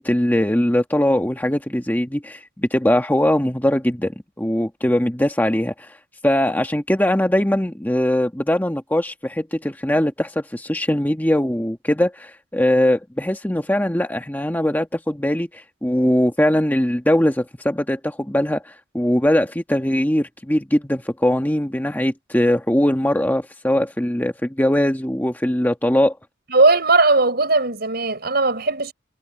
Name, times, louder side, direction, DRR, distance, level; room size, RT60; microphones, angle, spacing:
voice 1, 0.0-6.0 6.2-26.2, left 1 dB, 10° left, 1.3 m, -21 dB
voice 2, 26.5-28.9, right 3 dB, 55° right, 6.3 m, -18 dB
head